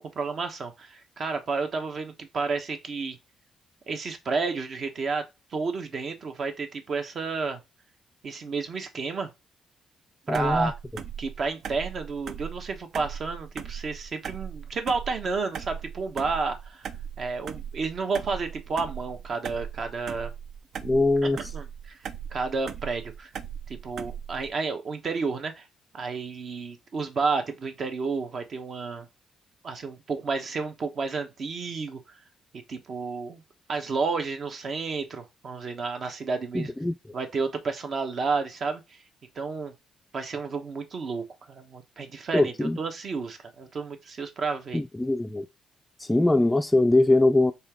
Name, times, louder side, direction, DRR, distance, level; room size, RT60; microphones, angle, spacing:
voice 1, 0.0-3.2 3.9-7.6 8.2-9.3 10.3-10.7 11.2-16.9 17.2-20.3 21.2-22.0 22.3-23.3 23.7-25.7 25.9-29.1 29.6-32.2 32.5-33.4 33.7-36.7 37.1-39.0 39.3-39.7 40.1-44.8, right 4 dB, 50° right, 1.0 m, -31 dB
voice 2, 10.3-10.7 20.8-21.4 36.5-36.9 42.3-42.8 44.7-45.5 46.0-47.5, left 2 dB, 10° left, 0.3 m, -22 dB
sound 1, 10.3-24.5, right 8 dB, 70° right, 0.5 m, -39 dB
4.3 x 3.4 x 3.6 m
cardioid pair, 90°, 0 cm